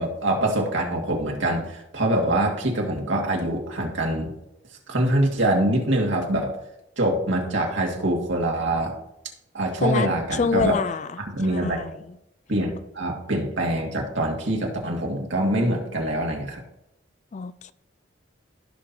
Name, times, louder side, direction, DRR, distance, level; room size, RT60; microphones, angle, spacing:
voice 1, 0.0-4.3 4.9-6.6 7.0-9.0 9.5-10.8 11.3-11.8 12.5-16.6, right 1 dB, 75° right, 2.1 m, -24 dB
voice 2, 9.8-11.1 11.5-11.9 17.3-17.7, left 5 dB, 40° left, 0.3 m, -26 dB
15.5 x 6.1 x 2.8 m
head